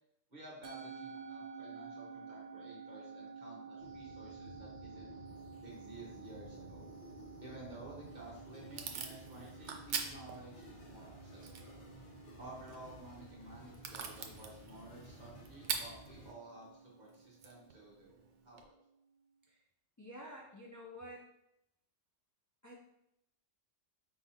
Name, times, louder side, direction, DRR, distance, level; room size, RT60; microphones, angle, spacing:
voice 1, 0.3-5.1 5.6-6.9 7.4-11.7 12.4-18.7, right 2 dB, 40° right, -5 dB, 1.4 m, -53 dB
Musical instrument, 0.6-19.1, right 5 dB, 55° right, 0.8 m, -53 dB
sound 1, 3.8-16.3, equal, 75° left, 1.4 m, -55 dB
Packing tape duct tape / Tearing, 7.9-18.6, right 6 dB, 85° right, 0.9 m, -46 dB
voice 2, 20.0-21.3 22.6-22.8, equal, 30° left, -3 dB, 0.3 m, -50 dB
4.7 x 3.7 x 2.8 m, 0.79 s
omnidirectional pair, 1.2 m